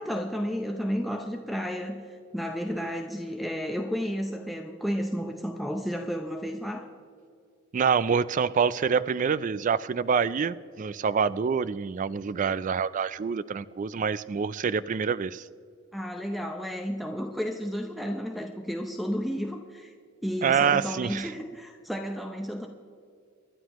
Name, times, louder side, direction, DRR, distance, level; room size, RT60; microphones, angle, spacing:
voice 1, 0.0-6.9 15.9-19.9 20.2-22.7, equal, ahead, 4 dB, 0.6 m, -32 dB
voice 2, 7.7-15.4 20.4-21.3, right 6 dB, 40° right, 17 dB, 0.3 m, -26 dB
25.0 x 11.0 x 3.0 m, 2.3 s
head